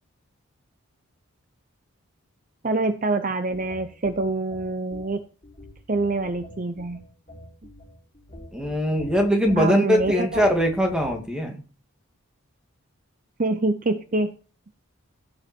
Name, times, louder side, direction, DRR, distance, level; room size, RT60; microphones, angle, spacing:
voice 1, 2.6-5.2 5.9-7.0 9.6-10.5 13.4-14.3, right 2 dB, 40° right, 10 dB, 0.7 m, -25 dB
sound 1, 3.5-11.4, left 1 dB, 25° left, 5.9 m, -44 dB
voice 2, 8.5-11.6, equal, 5° right, 2 dB, 2.4 m, -21 dB
16.5 x 7.4 x 4.5 m, 0.37 s
head